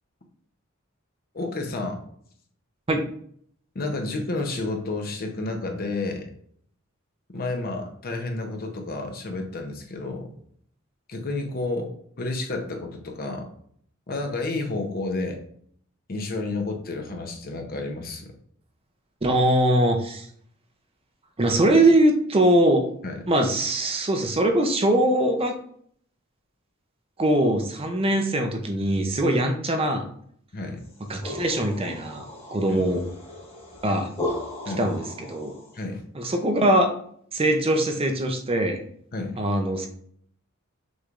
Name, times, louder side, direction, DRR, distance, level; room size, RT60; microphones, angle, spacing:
voice 1, 1.3-2.0 3.7-6.3 7.3-10.3 11.1-11.9 12.2-13.5 14.1-15.4 16.1-18.3 23.0-23.2 30.5-30.8 32.7-32.8 34.7-34.9 35.7-36.0 39.1-39.4, left 2 dB, 45° left, 3 dB, 0.7 m, -30 dB
voice 2, 19.2-20.3 21.4-22.9 23.3-25.6 27.2-30.1 31.1-32.2 32.5-33.0 33.8-34.1 34.8-35.5 36.1-36.9 37.3-38.8 39.4-39.9, right 1 dB, 25° right, 5 dB, 0.6 m, -22 dB
sound 1, 30.8-35.8, left 1 dB, 30° left, 1.6 m, -36 dB
6.2 x 3.2 x 2.5 m, 0.63 s
head